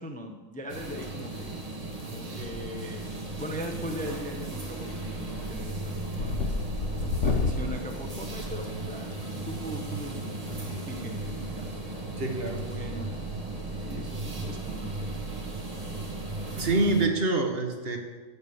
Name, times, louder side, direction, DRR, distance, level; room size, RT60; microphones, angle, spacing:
voice 1, 0.0-1.6 2.1-3.1 3.4-6.4 7.2-9.1 9.4-12.0 12.4-13.1 13.9-15.1, equal, 5° left, 3 dB, 0.7 m, -40 dB
sound 1, 0.7-17.0, right 2 dB, 25° right, 1.5 m, -36 dB
sound 2, 2.4-2.9 3.3-3.8 4.1-4.4 4.7-9.2 10.5-10.7 11.9-12.7 13.0-13.2 13.7-13.8 14.1-14.2 14.5-14.7 15.0-15.1 16.7-16.9, left 3 dB, 55° left, 1.5 m, -32 dB
voice 2, 12.2-12.7 16.5-18.0, right 2 dB, 45° right, 3 dB, 1.5 m, -26 dB
15.0 x 5.5 x 7.0 m, 1.3 s
omnidirectional pair, 1.5 m